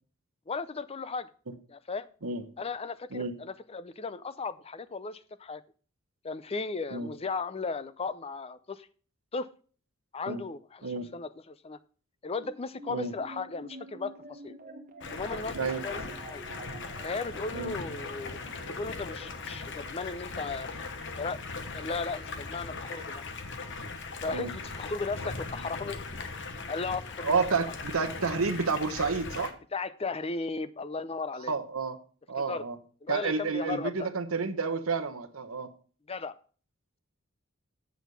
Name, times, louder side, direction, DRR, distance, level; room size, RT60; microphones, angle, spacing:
voice 1, 0.5-1.3 1.7-2.1 2.6-5.6 6.2-8.9 9.3-9.5 10.1-11.8 12.2-14.5 15.1-16.0 16.3-16.4 17.0-18.4 18.7-20.7 21.2-21.4 21.7-23.2 24.2-26.4 26.7-27.8 29.7-31.5 32.5-32.6 33.0-34.1 36.1-36.3, left 4 dB, 25° left, 15 dB, 0.5 m, -36 dB
sound 1, 12.3-24.9, right 2 dB, 40° right, 1.3 m, -50 dB
Stream, 15.0-29.5, left 4 dB, 55° left, 1.1 m, -39 dB
voice 2, 27.2-29.5 31.4-32.0 32.3-32.8 33.1-35.7, right 4 dB, 70° right, 7 dB, 1.0 m, -30 dB
8.2 x 6.4 x 5.3 m, 0.41 s
head